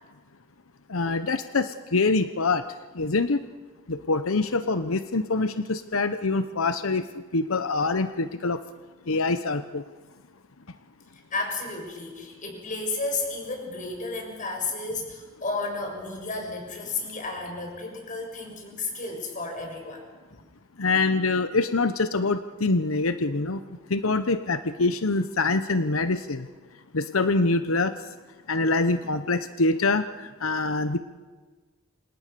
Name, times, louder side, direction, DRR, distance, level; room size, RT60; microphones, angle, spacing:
voice 1, 0.9-2.6 2.9-3.4 3.9-8.6 9.1-9.8 20.8-23.6 23.9-26.5 26.9-28.1 28.5-31.0, left 3 dB, 90° left, 10 dB, 1.0 m, -25 dB
voice 2, 11.1-20.0 20.3-20.4, left 3 dB, 40° left, 2 dB, 6.7 m, -33 dB
28.0 x 26.5 x 6.9 m, 1.4 s
head